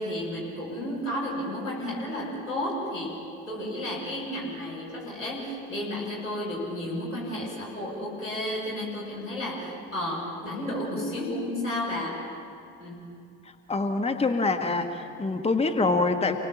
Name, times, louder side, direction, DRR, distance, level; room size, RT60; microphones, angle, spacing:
voice 1, 0.0-3.2 3.5-12.2 12.8-13.1, left 1 dB, 90° left, -7 dB, 6.1 m, -32 dB
voice 2, 13.7-16.4, left 3 dB, 15° left, 6 dB, 1.5 m, -25 dB
29.0 x 19.0 x 7.3 m, 2.4 s
figure-of-eight pair, 55°, 38 cm